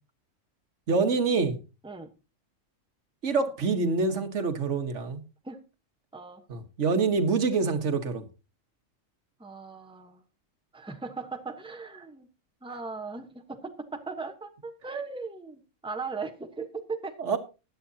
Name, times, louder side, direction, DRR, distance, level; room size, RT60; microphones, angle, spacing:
voice 1, 0.9-1.6 3.2-5.2 6.5-8.3 17.2-17.4, right 4 dB, 65° right, 1.6 m, -26 dB
voice 2, 9.4-10.2 10.7-12.3 12.6-17.1, right 4 dB, 5° right, 1.0 m, -38 dB
16.0 x 10.5 x 2.8 m
omnidirectional pair, 1.4 m